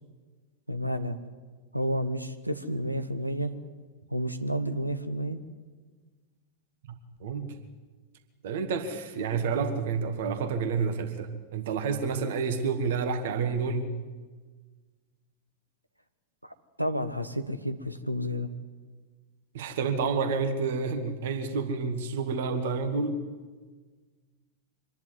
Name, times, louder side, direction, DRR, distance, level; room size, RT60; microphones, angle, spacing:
voice 1, 0.7-1.2 1.7-3.5 4.1-5.4 16.4-18.5, equal, 90° right, 10 dB, 1.2 m, -31 dB
voice 2, 6.9-7.5 8.4-13.9 19.5-23.2, right 5 dB, 55° right, 7 dB, 2.1 m, -29 dB
25.0 x 11.0 x 9.6 m, 1.4 s
figure-of-eight pair, 90°, 0 cm